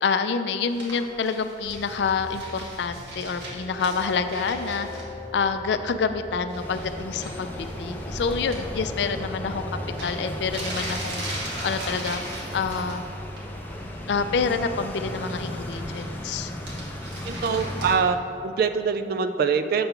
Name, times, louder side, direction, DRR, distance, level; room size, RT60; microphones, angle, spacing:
voice 1, 0.0-4.9 5.3-9.6 10.0-11.2 11.6-12.2 12.5-13.0 14.1-16.5, left 5 dB, 70° left, 10 dB, 0.4 m, -27 dB
sound 1, 0.7-5.0 6.5-6.9 7.2-8.6 9.6-9.7 10.0-13.0 13.3-13.7 14.0-16.2 16.5-18.0, right 1 dB, 75° right, 1.6 m, -38 dB
Train, 1.6-12.8, left 1 dB, 35° right, 1.1 m, -42 dB
sound 2, 6.6-17.9, left 1 dB, 10° left, 0.5 m, -35 dB
voice 2, 17.2-19.9, right 5 dB, 55° right, 9 dB, 0.3 m, -24 dB
6.8 x 3.7 x 5.7 m, 2.7 s
head